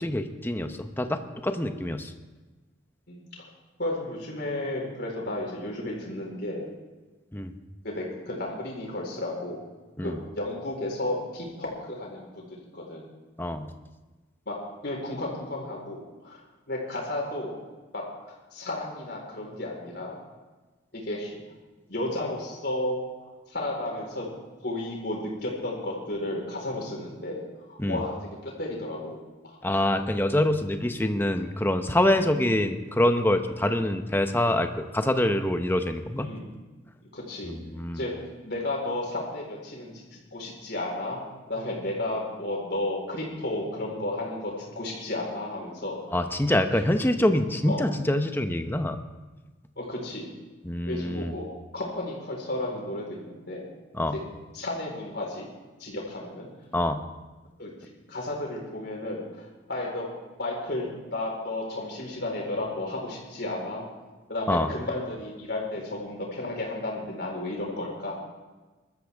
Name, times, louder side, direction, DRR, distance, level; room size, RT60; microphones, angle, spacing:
voice 1, 0.0-2.1 7.3-7.5 10.0-10.2 13.4-13.7 27.8-28.0 29.6-36.3 37.4-38.0 46.1-49.0 50.6-51.3 53.9-54.2 56.7-57.0 64.5-64.7, left 1 dB, 10° left, 7 dB, 0.8 m, -25 dB
voice 2, 3.1-3.4 3.8-6.7 7.8-9.6 10.0-12.5 12.7-13.0 14.5-14.6 14.8-16.4 16.7-17.6 17.9-18.0 18.5-20.2 20.9-21.3 21.9-24.3 24.6-27.4 27.7-28.1 28.4-29.6 32.2-32.3 33.6-33.8 36.2-36.5 37.1-37.5 37.9-38.1 38.4-40.0 40.3-41.2 41.5-46.2 47.7-47.8 49.8-50.3 50.8-51.5 51.7-53.7 54.5-55.5 55.8-56.5 57.6-57.7 58.1-60.1 60.4-63.8 64.3-68.2, left 1 dB, 60° left, -2 dB, 4.4 m, -33 dB
21.5 x 13.0 x 3.5 m, 1.2 s
head